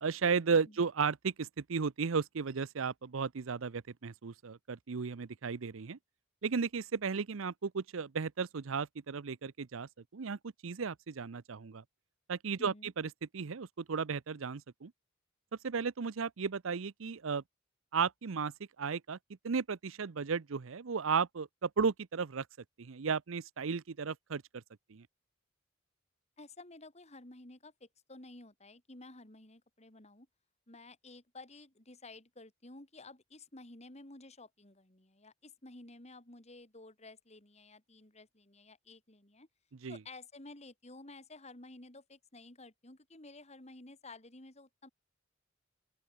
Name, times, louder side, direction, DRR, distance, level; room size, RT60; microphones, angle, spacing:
voice 1, 0.0-6.0 6.4-11.8 12.3-14.9 15.6-17.4 17.9-18.5 18.8-19.2 19.4-22.5 22.8-24.6 24.9-25.1 39.8-40.0, right 5 dB, 75° right, 0.6 m, -34 dB
voice 2, 12.6-12.9 26.4-30.3 30.7-39.5 39.9-44.9, left 2 dB, 30° left, 3.0 m, -53 dB
open air
head